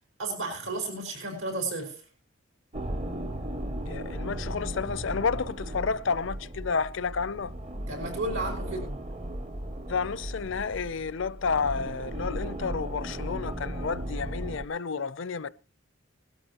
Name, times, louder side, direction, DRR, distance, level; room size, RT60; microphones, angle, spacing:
voice 1, 0.2-2.0 7.9-9.0, right 2 dB, 85° right, 5.3 m, -33 dB
sound 1, 2.7-14.7, right 1 dB, 30° right, 0.6 m, -36 dB
voice 2, 3.9-7.5 9.9-15.5, left 5 dB, 65° left, 0.6 m, -31 dB
19.5 x 12.5 x 2.9 m
head